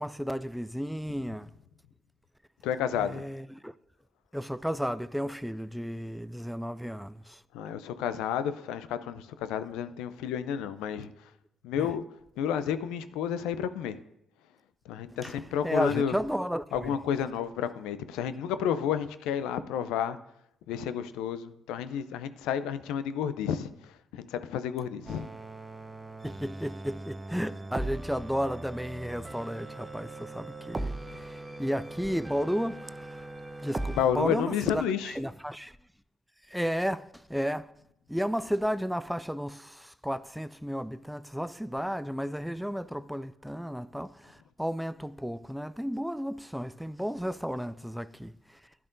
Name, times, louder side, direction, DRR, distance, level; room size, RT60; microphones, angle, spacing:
voice 1, 0.0-1.5 2.9-3.7 4.3-7.4 11.8-11.9 15.2-15.4 15.6-17.0 26.2-33.3 33.6-34.8 35.1-35.8 36.5-37.7 38.1-48.6, equal, ahead, 0.4 m, -33 dB
voice 2, 2.6-3.2 7.5-11.1 11.6-12.0 12.4-14.0 14.9-16.1 16.7-20.2 20.7-25.3 33.9-35.2, left 8 dB, 75° left, 0.5 m, -31 dB
sound 1, 25.1-34.0, right 2 dB, 25° right, 0.9 m, -39 dB
11.5 x 10.0 x 2.6 m
hypercardioid pair, 50°, 0 cm